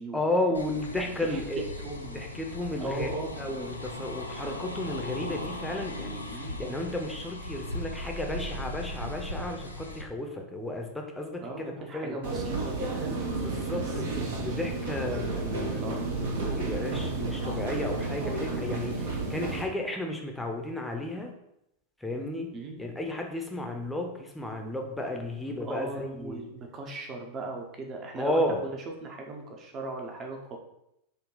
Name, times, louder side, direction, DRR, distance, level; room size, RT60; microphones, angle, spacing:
voice 1, 0.1-1.7 2.1-12.2 13.4-21.3 22.0-22.5 22.8-26.4 28.2-28.6, left 1 dB, 5° left, 2 dB, 0.7 m, -33 dB
sound 1, 0.5-10.0, left 1 dB, 85° left, 0.4 m, -38 dB
voice 2, 1.2-2.2 2.8-3.4 6.3-6.8 11.4-13.2 13.7-14.2 15.8-16.1 22.5-22.8 25.6-28.7 29.0-30.6, right 2 dB, 30° right, 2 dB, 0.8 m, -38 dB
sound 2, 12.2-19.6, right 3 dB, 60° right, 0.8 m, -32 dB
5.3 x 2.3 x 3.8 m, 0.82 s
figure-of-eight pair, 90°, 0 cm